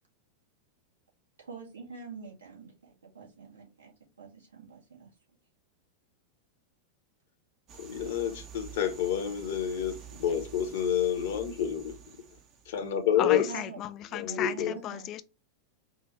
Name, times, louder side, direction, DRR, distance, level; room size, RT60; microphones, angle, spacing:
voice 1, 1.4-5.1 13.4-13.8 14.1-15.1, right 5 dB, 70° right, 1.5 m, -46 dB
sound 1, 7.7-13.0, right 9 dB, 30° right, 0.8 m, -49 dB
voice 2, 7.8-12.0 12.7-13.4 14.1-14.7, left 9 dB, 55° left, 0.8 m, -29 dB
voice 3, 13.1-15.2, left 11 dB, 35° left, 0.4 m, -35 dB
4.9 x 2.4 x 3.0 m
figure-of-eight pair, 90°, 0 cm